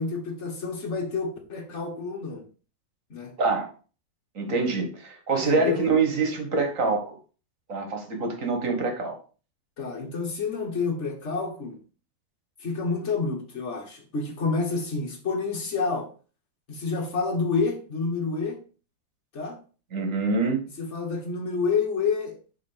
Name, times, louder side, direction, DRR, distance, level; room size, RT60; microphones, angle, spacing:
voice 1, 0.0-2.5 3.1-3.3 5.5-5.8 9.8-11.8 12.6-16.1 16.7-18.6 19.3-19.6 20.8-22.4, left 4 dB, 50° left, 1.8 m, -28 dB
voice 2, 3.4-3.7 4.4-7.2 7.7-9.2 19.9-20.7, right 3 dB, 60° right, 2.0 m, -25 dB
6.8 x 4.0 x 5.1 m
omnidirectional pair, 1.6 m